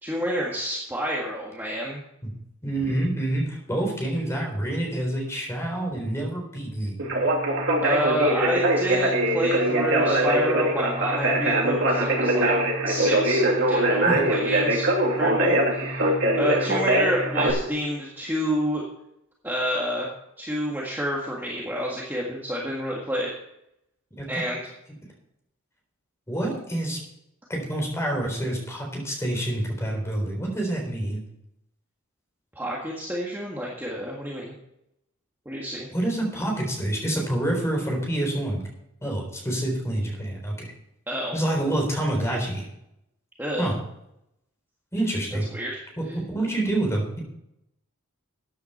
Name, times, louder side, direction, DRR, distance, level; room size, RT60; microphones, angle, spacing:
voice 1, 0.0-2.0 7.8-12.5 12.9-18.8 19.4-20.1 20.4-23.3 24.3-24.6 32.5-34.5 35.4-35.9 41.1-41.3 43.4-43.7 45.5-45.7, equal, 10° right, -4 dB, 1.7 m, -29 dB
voice 2, 2.6-6.9 14.1-14.2 24.2-24.3 26.3-27.0 27.5-31.2 35.9-38.6 39.0-40.7 41.3-42.6 43.6-43.7 44.9-45.5 46.0-47.2, right 1 dB, 10° left, 0 dB, 3.9 m, -27 dB
Conversation, 7.0-17.5, right 1 dB, 55° right, 2.7 m, -22 dB
14.0 x 9.6 x 4.4 m, 0.82 s
head